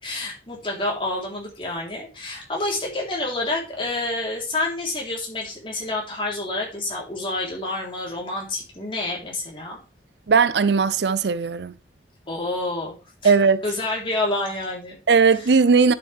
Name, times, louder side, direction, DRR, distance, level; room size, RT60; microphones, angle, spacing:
voice 1, 0.0-9.8 12.3-13.0 13.2-13.3 13.6-15.0 15.3-15.5, left 2 dB, 30° left, 3.7 m, -28 dB
voice 2, 10.3-11.7 13.2-13.6 15.1-15.9, right 5 dB, 75° right, 0.5 m, -18 dB
11.0 x 6.8 x 3.5 m
head